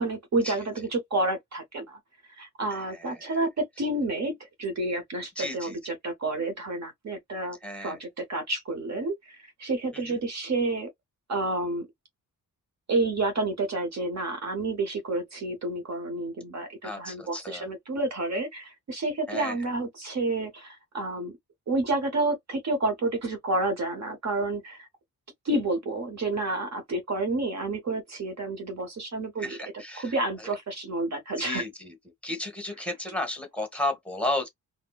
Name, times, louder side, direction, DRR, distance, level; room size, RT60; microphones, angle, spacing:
voice 1, 0.0-2.0 2.4-10.9 11.3-11.9 12.9-21.4 21.7-24.9 25.4-29.6 29.9-31.6, right 2 dB, 50° right, 1.0 m, -30 dB
voice 2, 2.7-3.4 5.4-5.8 7.6-8.0 9.9-10.2 16.8-17.7 19.3-19.5 29.4-30.1 31.4-31.9 32.2-34.5, left 1 dB, 5° left, 1.2 m, -33 dB
4.2 x 2.1 x 2.4 m
wide cardioid pair, 160°, 35 cm